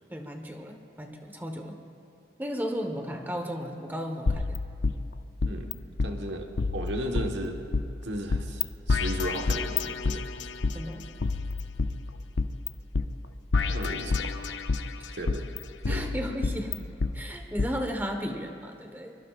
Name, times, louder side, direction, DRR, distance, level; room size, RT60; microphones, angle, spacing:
voice 1, 0.1-1.8 2.4-4.6 10.7-11.0 15.9-19.2, equal, 10° right, 4 dB, 1.3 m, -35 dB
sound 1, 4.3-5.7 6.0-6.1 6.6-7.8 8.3-8.6 8.9-10.7 11.2-12.7 12.9-13.1 13.5-14.9 15.3-17.1 17.6-17.7, left 4 dB, 85° left, 0.6 m, -28 dB
voice 2, 5.4-7.6 8.0-10.2 13.6-14.3 15.1-15.5 15.9-16.2, right 1 dB, 85° right, 2 dB, 1.4 m, -35 dB
23.5 x 23.5 x 2.5 m, 2.5 s
head